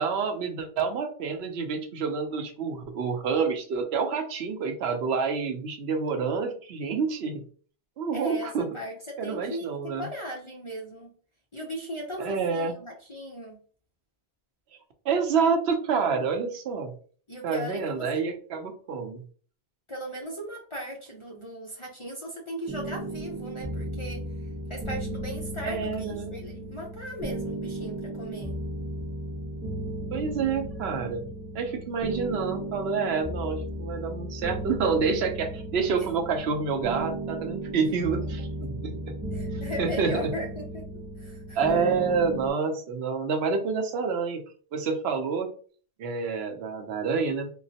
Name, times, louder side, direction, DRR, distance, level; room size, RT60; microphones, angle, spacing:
voice 1, 0.0-7.4 8.0-8.7 9.2-10.1 12.2-12.7 15.1-16.9 17.4-19.2 25.7-26.3 30.1-31.2 31.5-39.1 39.5-40.3 41.6-44.4 44.7-45.5 46.0-47.5, right 5 dB, 75° right, 6 dB, 0.8 m, -28 dB
voice 2, 8.1-11.1 11.5-13.6 17.3-18.2 19.9-24.2 24.7-28.6 36.0-36.1 39.3-40.9 41.2-41.8, equal, 40° left, -1 dB, 0.5 m, -38 dB
sound 1, 22.7-42.5, right 1 dB, 20° right, 0.6 m, -35 dB
3.7 x 2.0 x 2.6 m, 0.43 s
omnidirectional pair, 1.1 m